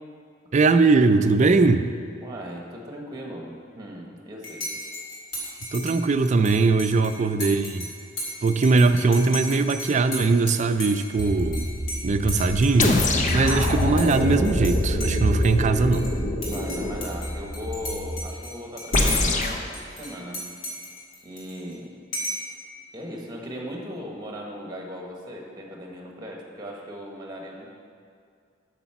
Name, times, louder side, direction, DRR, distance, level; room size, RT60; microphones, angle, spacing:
voice 1, 0.5-1.9 5.7-7.9 8.4-11.7 12.0-13.0 13.3-16.1, right 3 dB, 40° right, 10 dB, 0.4 m, -20 dB
voice 2, 2.2-4.6 16.5-20.4 21.2-21.9 22.9-27.7, equal, 20° right, 0 dB, 1.4 m, -38 dB
Dishes pots and pans / Cutlery silverware / Chink clink, 4.4-14.7 15.0-16.1 16.4-19.5 19.7-21.7 22.1-22.5, equal, 80° left, 2.5 m, -35 dB
Car / Engine, 11.2-18.2, equal, 60° left, 1.9 m, -28 dB
sound 1, 12.8-17.1 18.9-19.6, left 2 dB, 40° left, 0.7 m, -25 dB
8.2 x 6.7 x 5.8 m, 2.3 s
head